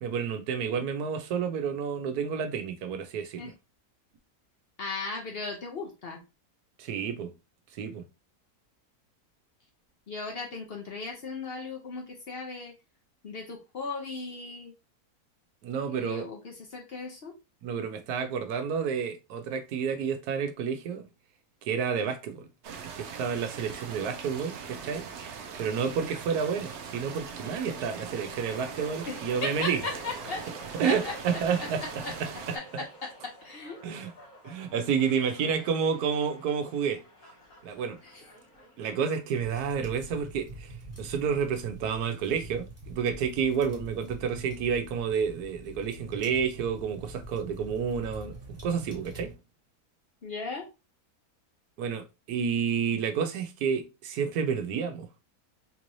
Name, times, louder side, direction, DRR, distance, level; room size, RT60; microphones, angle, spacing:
voice 1, 0.0-3.5 6.8-7.3 7.8-8.1 15.6-16.3 17.6-21.1 21.7-22.5 23.0-25.1 25.6-29.8 30.8-31.8 32.2-32.3 32.7-32.9 33.8-34.1 34.4-37.0 37.6-38.0 38.8-49.3 51.8-55.1, right 6 dB, 85° right, 1.2 m, -30 dB
voice 2, 4.8-6.2 10.1-12.7 13.2-14.7 15.9-17.4 29.1-30.5 30.8-32.1 32.5-33.8 38.0-38.3 50.2-50.7, left 3 dB, 50° left, 0.8 m, -37 dB
sound 1, 22.6-32.6, right 6 dB, 65° right, 0.7 m, -41 dB
sound 2, 24.3-40.3, equal, 75° left, 1.8 m, -50 dB
Fire crackling in fireplace, 39.4-49.3, right 2 dB, 10° right, 1.1 m, -44 dB
3.8 x 3.0 x 2.6 m
omnidirectional pair, 1.6 m